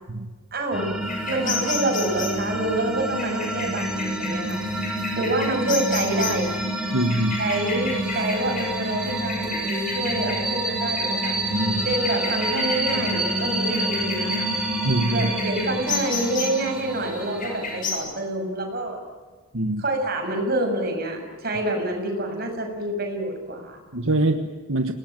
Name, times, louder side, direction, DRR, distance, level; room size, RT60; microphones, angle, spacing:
voice 1, 0.5-0.9 1.3-4.6 5.2-6.5 7.4-11.3 11.8-14.5 15.1-19.0 19.8-23.8, right 1 dB, 45° right, 3 dB, 6.5 m, -27 dB
sound 1, 0.7-17.9, right 1 dB, 5° right, 5.2 m, -28 dB
sound 2, 1.0-17.9, left 4 dB, 40° left, 6.9 m, -34 dB
voice 2, 6.9-7.4 11.5-11.9 14.8-15.3 19.5-19.8 23.9-24.9, right 1 dB, 75° right, 6 dB, 1.4 m, -24 dB
29.5 x 19.5 x 9.2 m, 1.3 s
head